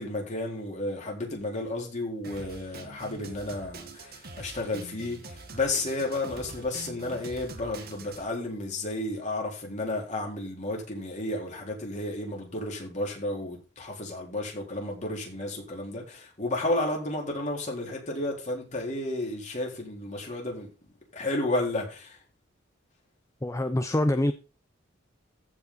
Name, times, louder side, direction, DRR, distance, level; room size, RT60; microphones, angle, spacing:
voice 1, 0.0-20.7 21.1-22.2, left 2 dB, 40° left, 3.8 m, -32 dB
Drum kit, 2.2-8.2, right 3 dB, 50° right, 1.6 m, -44 dB
voice 2, 23.4-24.3, left 1 dB, 15° left, 0.5 m, -25 dB
15.0 x 5.2 x 4.0 m
head